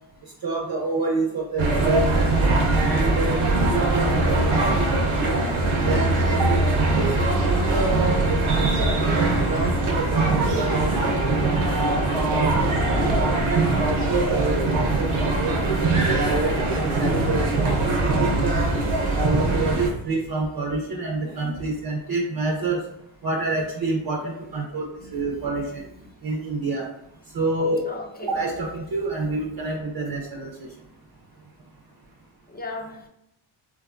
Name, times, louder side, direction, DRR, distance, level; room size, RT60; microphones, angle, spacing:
voice 1, 0.4-2.3 2.7-5.5 5.9-11.2 11.6-15.6 16.1-18.7 19.1-22.8 23.2-25.9 26.2-26.9 27.3-27.8 28.2-30.7, right 3 dB, 45° right, -1 dB, 0.6 m, -28 dB
sound 1, 1.6-19.9, right 2 dB, 80° right, 0.7 m, -22 dB
voice 2, 25.0-25.3 27.9-28.3 32.5-33.1, left 2 dB, 20° left, 1 dB, 0.6 m, -37 dB
3.3 x 2.2 x 2.4 m, 0.80 s
cardioid pair, 50°, 49 cm